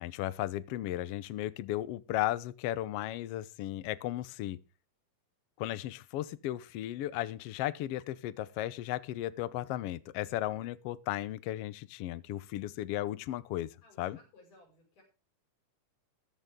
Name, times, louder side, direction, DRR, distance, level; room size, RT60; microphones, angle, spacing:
voice 1, 0.0-4.6 5.6-14.2, left 14 dB, 90° left, 1.3 m, -35 dB
voice 2, 13.8-15.0, left 2 dB, 70° left, 7.5 m, -60 dB
14.5 x 13.5 x 3.7 m
omnidirectional pair, 3.7 m